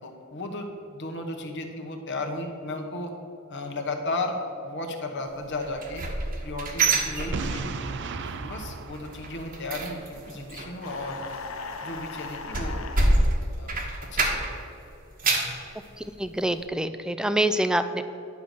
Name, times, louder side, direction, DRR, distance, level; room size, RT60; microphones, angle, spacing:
voice 1, 0.0-3.1 3.5-6.1 6.4-7.7 8.4-11.2 11.8-12.8 13.6-13.8 14.1-14.5, left 2 dB, 60° left, 3 dB, 1.2 m, -34 dB
sound 1, 5.6-7.9 8.2-8.6 8.9-14.7 15.0-15.6 16.1-16.2 16.6-16.7, right 2 dB, 40° right, 1.2 m, -27 dB
Boom, 7.3-10.2, right 4 dB, 60° right, 0.6 m, -35 dB
sound 2, 10.8-13.1, left 4 dB, 75° left, 0.8 m, -38 dB
voice 2, 16.0-18.0, right 1 dB, 5° right, 10 dB, 0.3 m, -26 dB
10.5 x 5.2 x 6.6 m, 2.8 s
head